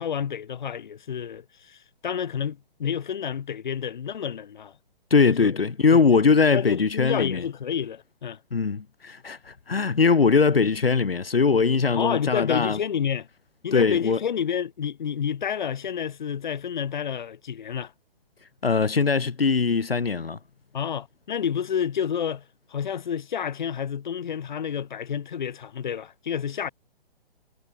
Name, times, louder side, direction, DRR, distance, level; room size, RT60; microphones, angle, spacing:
voice 1, 0.0-4.7 5.2-5.5 5.9-6.0 6.5-8.4 11.9-13.3 13.6-17.9 20.7-22.4 22.7-26.7, left 8 dB, 50° left, 1.6 m, -29 dB
voice 2, 5.1-7.4 8.5-12.8 13.7-14.2 18.6-20.4, left 5 dB, 70° left, 1.3 m, -21 dB
figure-of-eight pair, 130°, 30 cm